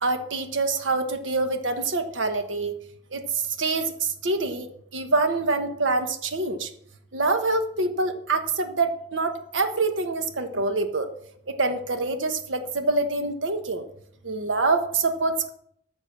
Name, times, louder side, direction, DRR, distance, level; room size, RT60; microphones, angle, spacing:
voice 1, 0.0-2.8 3.1-3.2 3.6-3.8 4.2-4.7 4.9-6.7 7.1-11.1 11.5-13.8 14.2-15.5, right 3 dB, 90° right, 7 dB, 1.3 m, -25 dB
13.5 x 4.5 x 7.1 m, 0.70 s
head